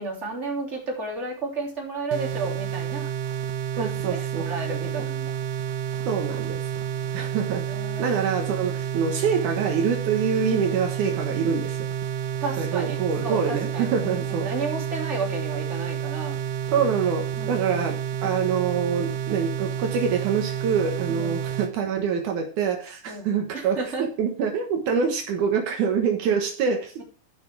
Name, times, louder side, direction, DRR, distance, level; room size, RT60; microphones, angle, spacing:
voice 1, 0.0-3.1 3.7-5.4 7.7-8.2 12.4-16.4 17.4-17.9 21.1-21.4 23.1-24.1, right 3 dB, 20° right, -1 dB, 3.2 m, -33 dB
sound 1, 2.1-21.7, right 9 dB, 90° right, 2.5 m, -30 dB
voice 2, 3.8-4.8 6.1-6.7 7.1-7.6 8.0-11.9 12.6-14.5 16.7-27.0, right 6 dB, 75° right, 3 dB, 2.7 m, -25 dB
13.0 x 6.0 x 4.7 m, 0.38 s
omnidirectional pair, 3.7 m